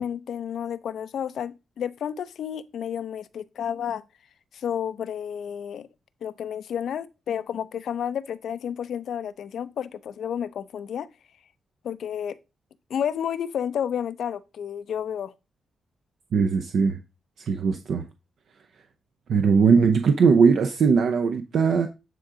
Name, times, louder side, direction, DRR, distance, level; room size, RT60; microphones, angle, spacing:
voice 1, 0.0-4.0 4.5-5.9 6.2-11.1 11.8-12.4 12.9-15.3, left 8 dB, 75° left, 0.5 m, -31 dB
voice 2, 16.3-17.0 17.5-18.0 19.3-21.9, right 5 dB, 70° right, 0.7 m, -20 dB
9.4 x 3.8 x 4.9 m
wide cardioid pair, 125°, 0 cm